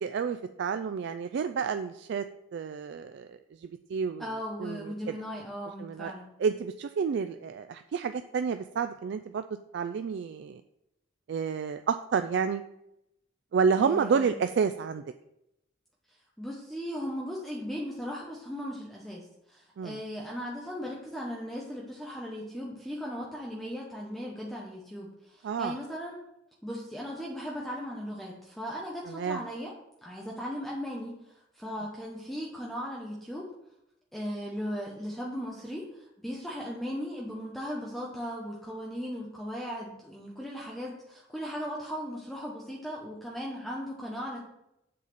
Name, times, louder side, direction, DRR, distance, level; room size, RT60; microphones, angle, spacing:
voice 1, 0.0-2.2 2.5-3.4 3.9-4.2 4.6-4.9 5.8-6.1 6.4-9.4 9.7-10.6 11.3-12.6 13.5-15.0 19.8-20.0 25.4-25.8 29.1-29.4, right 6 dB, 60° right, 9 dB, 0.3 m, -29 dB
voice 2, 4.2-6.3 13.8-14.3 16.1-26.2 26.6-29.7 30.0-33.5 34.1-44.4, equal, ahead, -4 dB, 0.9 m, -37 dB
7.6 x 4.1 x 6.7 m, 0.84 s
head